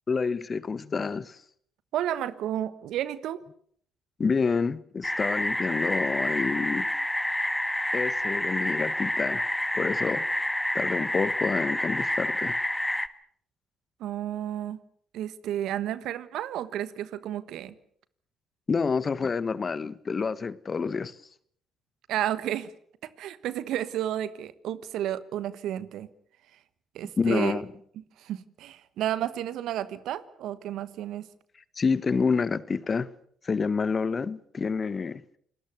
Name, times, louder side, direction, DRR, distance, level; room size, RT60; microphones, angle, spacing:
voice 1, 0.1-1.4 4.2-6.9 7.9-9.4 9.7-10.3 10.7-12.6 18.7-21.1 27.2-27.7 31.7-33.1 33.4-35.2, left 5 dB, 40° left, 1.3 m, -28 dB
voice 2, 1.9-3.4 14.0-14.8 15.1-17.8 22.1-22.7 23.0-26.1 26.9-27.6 28.2-31.3, right 11 dB, 70° right, 1.3 m, -32 dB
sound 1, 5.0-13.1, left 1 dB, 10° left, 1.6 m, -28 dB
28.5 x 20.0 x 6.8 m
hypercardioid pair, 50°, 0 cm